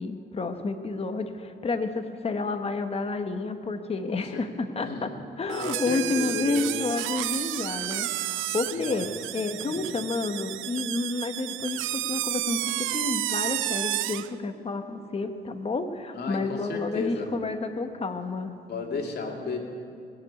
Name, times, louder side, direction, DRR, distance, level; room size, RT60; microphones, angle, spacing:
voice 1, 0.0-5.1 5.4-12.6 12.9-18.5, left 3 dB, 30° left, 7 dB, 1.1 m, -30 dB
voice 2, 4.1-4.4 4.8-5.1 5.6-6.7 8.7-9.1 9.6-9.8 16.1-17.3 18.7-19.6, left 4 dB, 55° left, 0 dB, 2.5 m, -34 dB
sound 1, 5.5-14.3, right 15 dB, 80° right, 0.4 m, -31 dB
20.0 x 7.1 x 8.3 m, 2.5 s
cardioid pair, 90°, 20 cm